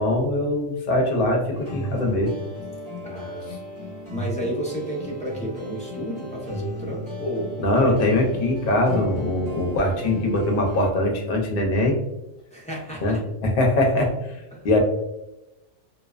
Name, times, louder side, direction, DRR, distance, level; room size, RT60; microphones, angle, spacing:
voice 1, 0.0-2.3 7.6-12.0 13.0-13.2 13.4-14.4 14.6-14.8, left 1 dB, 55° left, 1 dB, 0.8 m, -22 dB
sound 1, 1.5-10.9, equal, 25° right, 0.8 m, -36 dB
voice 2, 3.0-3.5 4.1-8.2 12.5-13.2 14.5-14.7, equal, 10° left, -5 dB, 0.4 m, -32 dB
2.6 x 2.1 x 2.3 m, 0.94 s
omnidirectional pair, 1.2 m